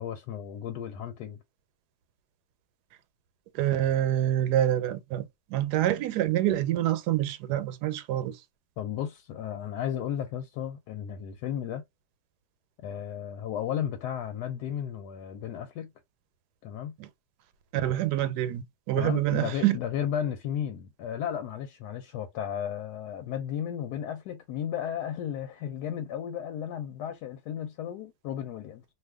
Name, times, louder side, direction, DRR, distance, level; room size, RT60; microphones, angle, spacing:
voice 1, 0.0-1.4 8.8-11.8 12.8-15.9 16.6-16.9 18.9-28.8, left 9 dB, 90° left, 1.1 m, -34 dB
voice 2, 3.5-8.4 17.0-17.1 17.7-19.8, right 12 dB, 85° right, 1.1 m, -26 dB
2.6 x 2.4 x 3.3 m
omnidirectional pair, 1.7 m